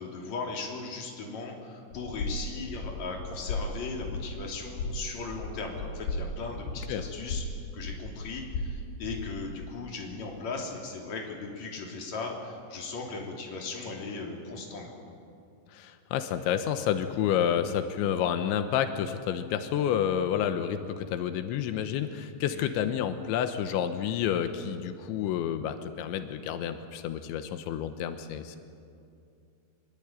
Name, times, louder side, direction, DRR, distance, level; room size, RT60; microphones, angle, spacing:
voice 1, 0.0-7.4 7.7-15.1 22.5-22.7, left 3 dB, 40° left, 0 dB, 4.1 m, -38 dB
sound 1, 1.9-9.7, left 2 dB, 60° left, 4.5 m, -36 dB
voice 2, 15.7-28.6, left 9 dB, 90° left, 8 dB, 3.4 m, -29 dB
24.5 x 22.5 x 9.0 m, 2.4 s
omnidirectional pair, 5.2 m